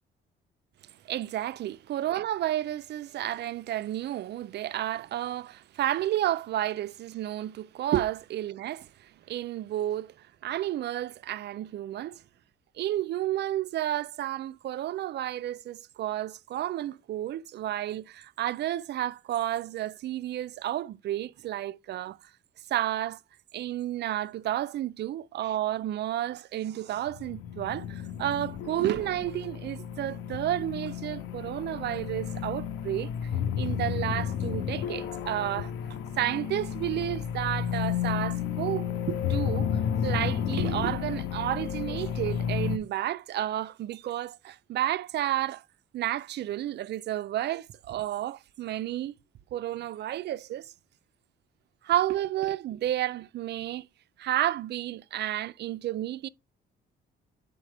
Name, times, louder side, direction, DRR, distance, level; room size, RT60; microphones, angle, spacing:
voice 1, 1.0-10.1 10.4-12.2 12.8-22.2 22.7-23.2 23.5-33.3 33.6-35.7 36.2-45.6 45.9-49.1 49.5-50.7 51.8-53.9 54.2-56.3, right 13 dB, 60° right, 0.4 m, -31 dB
sound 1, 27.1-42.8, left 9 dB, 90° left, 0.8 m, -32 dB
6.7 x 4.9 x 3.3 m
cardioid pair, 90°, 20 cm